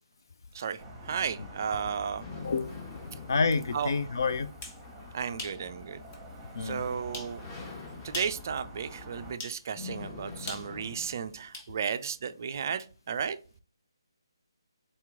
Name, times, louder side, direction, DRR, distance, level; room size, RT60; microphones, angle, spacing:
voice 1, 0.5-2.2 3.7-3.9 5.1-6.0 6.6-7.4 8.0-13.4, right 7 dB, 40° right, 11 dB, 0.3 m, -34 dB
sound 1, 0.8-9.3, equal, 5° right, 1.1 m, -47 dB
sound 2, 1.1-11.5, left 4 dB, 20° left, 1.0 m, -46 dB
voice 2, 3.3-4.5 6.5-6.9, left 4 dB, 55° left, 10 dB, 0.4 m, -28 dB
sound 3, 4.6-4.8 5.4-5.6 6.1-6.2 7.1-7.4 8.0-8.4 9.4-9.6 10.5-11.7, left 2 dB, 35° left, 1.3 m, -40 dB
4.2 x 2.9 x 3.5 m, 0.36 s
figure-of-eight pair, 145°, 3 cm